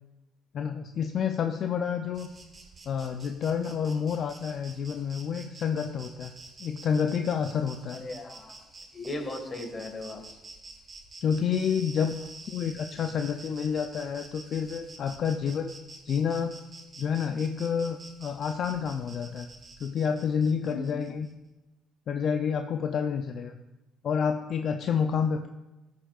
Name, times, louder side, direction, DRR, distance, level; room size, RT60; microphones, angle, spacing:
voice 1, 0.5-2.3 2.9-6.3 6.6-8.0 11.2-15.8 16.1-16.5 17.0-19.5 19.8-21.3 22.1-23.6 24.0-25.5, left 7 dB, 60° left, 6 dB, 0.4 m, -29 dB
Insect, 2.1-21.3, right 3 dB, 35° right, 1.6 m, -49 dB
voice 2, 7.9-8.6 8.9-10.4 20.6-20.9, left 2 dB, 30° left, 5 dB, 1.6 m, -37 dB
14.5 x 6.6 x 2.4 m, 1.1 s
supercardioid pair, 75°, 0 cm